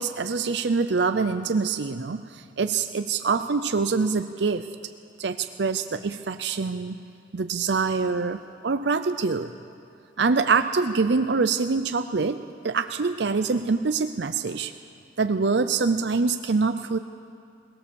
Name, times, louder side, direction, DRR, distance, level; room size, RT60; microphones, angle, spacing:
voice 1, 0.0-4.7 5.2-7.0 7.3-9.5 10.2-14.7 15.2-17.0, right 4 dB, 70° right, 9 dB, 0.6 m, -25 dB
21.5 x 19.0 x 7.0 m, 2.4 s
head